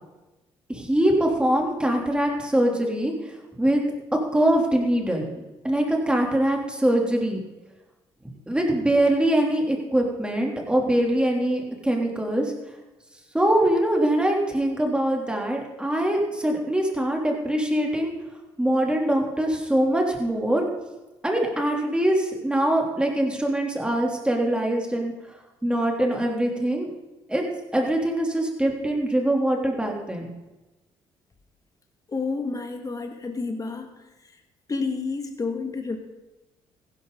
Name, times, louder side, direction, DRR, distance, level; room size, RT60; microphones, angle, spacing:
voice 1, 0.7-3.8 4.3-7.4 8.5-12.5 13.3-18.1 18.6-20.7 21.2-25.1 25.6-26.9 27.3-27.4 27.7-30.2, right 1 dB, 10° right, 0 dB, 3.4 m, -23 dB
voice 2, 32.1-33.9 34.7-36.0, left 4 dB, 30° left, 5 dB, 2.3 m, -29 dB
15.5 x 12.0 x 4.1 m, 1.1 s
supercardioid pair, 65°, 11 cm